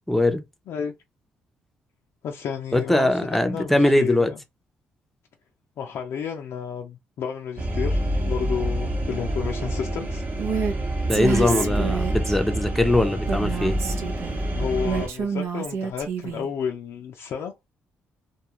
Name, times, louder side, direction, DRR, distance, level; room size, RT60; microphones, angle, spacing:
voice 1, 0.1-0.4 2.7-4.3 11.1-13.8, left 1 dB, 5° left, 0.6 m, -21 dB
voice 2, 2.2-4.4 5.8-10.2 11.3-12.0 14.5-17.5, left 7 dB, 70° left, 0.4 m, -31 dB
sound 1, 7.6-15.1, right 1 dB, 40° right, 0.9 m, -27 dB
Female speech woman speaking, 10.4-10.7 11.1-12.4 13.3-14.4 14.8-16.5, right 6 dB, 70° right, 0.6 m, -28 dB
2.3 x 2.3 x 3.0 m
cardioid pair, 75°, 5 cm